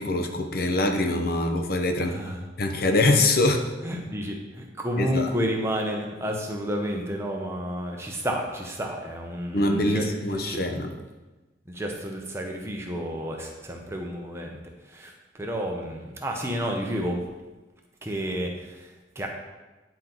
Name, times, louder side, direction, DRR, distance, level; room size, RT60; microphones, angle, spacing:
voice 1, 0.0-2.2 2.6-3.6 5.0-5.3 9.5-10.9, left 2 dB, 55° left, 5 dB, 0.7 m, -24 dB
voice 2, 2.0-2.4 3.8-10.6 11.7-14.6 14.8-17.2 18.0-19.3, equal, 15° right, 1 dB, 0.9 m, -31 dB
9.9 x 4.5 x 4.0 m, 1.1 s
head